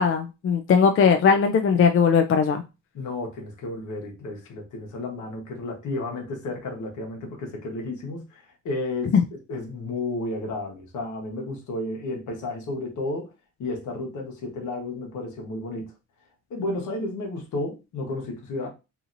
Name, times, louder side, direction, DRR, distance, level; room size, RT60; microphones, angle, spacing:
voice 1, 0.0-2.6, left 6 dB, 45° left, 0.4 m, -19 dB
voice 2, 2.9-13.3 13.6-15.9 16.5-18.7, left 2 dB, 75° left, 1.2 m, -32 dB
2.8 x 2.7 x 2.6 m
cardioid pair, 90°, 30 cm